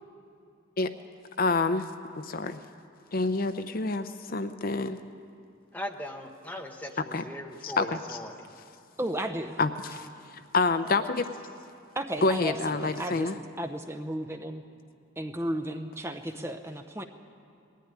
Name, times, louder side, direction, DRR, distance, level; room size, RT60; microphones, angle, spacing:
voice 1, 1.4-1.9 2.2-2.6 3.1-5.0 7.1-7.2 7.6-8.2 9.6-11.3 12.2-13.4, left 3 dB, 45° left, 10 dB, 0.6 m, -28 dB
voice 2, 5.7-8.5, left 1 dB, 10° left, 2 dB, 1.2 m, -39 dB
voice 3, 9.0-9.6 11.9-14.6 15.2-17.0, right 1 dB, 15° right, 5 dB, 0.7 m, -34 dB
20.0 x 14.0 x 9.6 m, 2.6 s
head